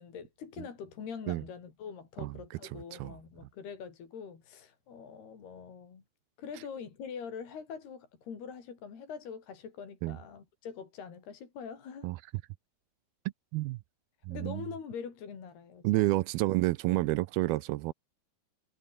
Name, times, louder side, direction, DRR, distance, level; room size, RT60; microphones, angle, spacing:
voice 1, 0.0-6.0 6.4-12.1 14.3-16.2, left 6 dB, 70° left, 6.2 m, -44 dB
voice 2, 2.7-3.2 10.0-10.2 12.0-12.2 13.5-13.8 14.3-14.7 15.8-17.9, right 19 dB, 80° right, 2.4 m, -29 dB
omnidirectional pair, 4.7 m